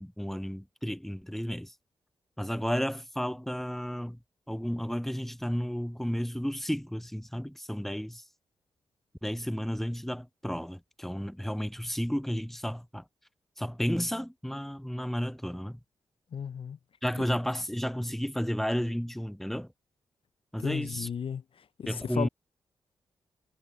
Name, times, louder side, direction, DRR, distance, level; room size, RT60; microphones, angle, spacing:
voice 1, 0.0-1.7 2.4-4.2 4.5-8.2 9.2-13.0 13.6-15.8 17.0-19.7 20.5-21.1 21.9-22.3, equal, ahead, 1.8 m, -32 dB
voice 2, 16.3-16.8 20.6-22.3, left 7 dB, 65° left, 1.5 m, -35 dB
supercardioid pair, 45°, 10 cm